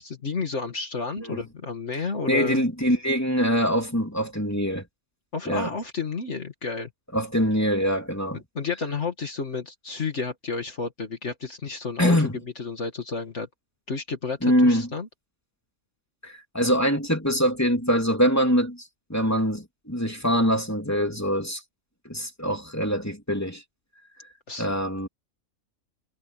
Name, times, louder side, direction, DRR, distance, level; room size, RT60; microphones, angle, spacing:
voice 1, 0.0-2.6 5.3-6.9 8.3-12.3 12.6-13.5 13.9-15.1 24.5-24.8, left 4 dB, 60° left, 2.3 m, -31 dB
voice 2, 2.3-4.8 5.4-5.7 7.1-8.4 12.0-12.4 14.4-14.9 16.2-21.6 22.0-23.6 24.6-25.1, equal, 10° left, 3.3 m, -24 dB
omnidirectional pair, 1.3 m